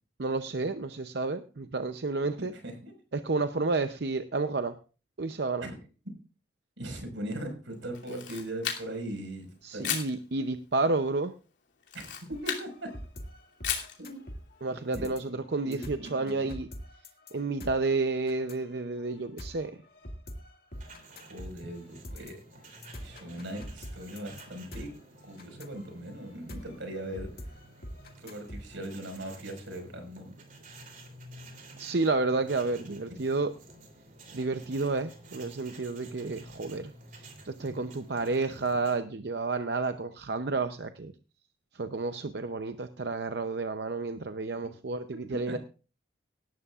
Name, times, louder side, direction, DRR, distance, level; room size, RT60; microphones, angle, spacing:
voice 1, 0.2-2.5 3.2-4.7 5.2-5.7 9.6-11.3 14.6-16.7 17.3-19.7 31.8-33.5 34.3-36.9 37.4-41.1 41.7-45.6, right 3 dB, 60° right, 8 dB, 0.7 m, -30 dB
voice 2, 2.4-2.9 5.6-5.8 6.8-9.9 11.9-12.9 14.0-14.2 14.7-15.1 15.6-16.5 21.1-22.6 23.0-24.9 25.2-27.6 28.2-30.3 33.1-33.2 45.5-45.6, right 1 dB, 85° right, 5 dB, 5.1 m, -40 dB
Camera, 7.9-9.1 9.8-10.1 11.8-12.7 13.6-14.0, left 8 dB, 70° left, 2.8 m, -34 dB
sound 1, 12.3-29.2, equal, 50° left, 2.1 m, -45 dB
sound 2, 20.7-39.0, right 2 dB, 45° right, 3.2 m, -51 dB
18.0 x 12.5 x 2.5 m, 0.36 s
head